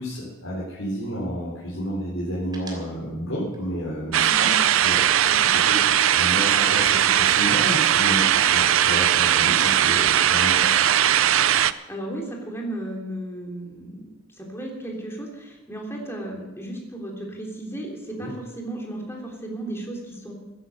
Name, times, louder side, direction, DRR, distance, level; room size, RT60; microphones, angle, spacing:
voice 1, 0.0-4.5 4.8-5.2 5.6-5.8 6.1-10.7 18.2-18.3, equal, 70° left, -6 dB, 3.9 m, -31 dB
sound 1, 2.5-5.3 5.6-5.8 6.1-6.7 7.1-9.1 9.4-10.1 10.4-12.2, right 2 dB, 20° right, 3.2 m, -44 dB
sound 2, 4.1-11.7, right 10 dB, 65° right, 0.5 m, -19 dB
voice 2, 11.9-20.3, right 1 dB, 10° left, -1 dB, 3.2 m, -34 dB
16.0 x 10.0 x 6.5 m, 1.1 s
head